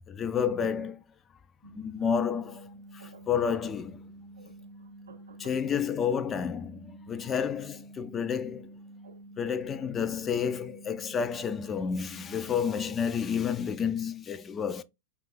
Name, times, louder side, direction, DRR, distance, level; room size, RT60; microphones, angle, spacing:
voice 1, 0.1-1.0 1.7-2.7 3.3-4.0 5.4-8.7 9.4-14.8, left 7 dB, 20° left, 0.4 m, -30 dB
sound 1, 1.6-13.0, right 1 dB, 55° left, 0.9 m, -49 dB
voice 2, 3.0-3.6 4.4-5.6 9.0-9.2 9.5-9.6 12.5-12.6, right 6 dB, 70° right, 0.6 m, -53 dB
4.9 x 2.3 x 3.3 m
figure-of-eight pair, 90°, 0 cm